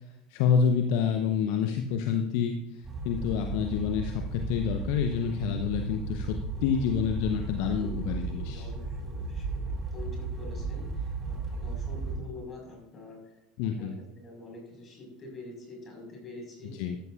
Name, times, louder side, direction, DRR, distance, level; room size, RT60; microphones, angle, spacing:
voice 1, 0.3-8.7 13.6-13.9 16.8-17.0, left 7 dB, 55° left, 5 dB, 0.9 m, -28 dB
sound 1, 2.8-12.2, right 3 dB, 25° right, 3.3 m, -35 dB
voice 2, 7.6-16.8, left 2 dB, 30° left, 1 dB, 5.0 m, -46 dB
13.5 x 12.5 x 2.5 m, 0.86 s
figure-of-eight pair, 75°, 0 cm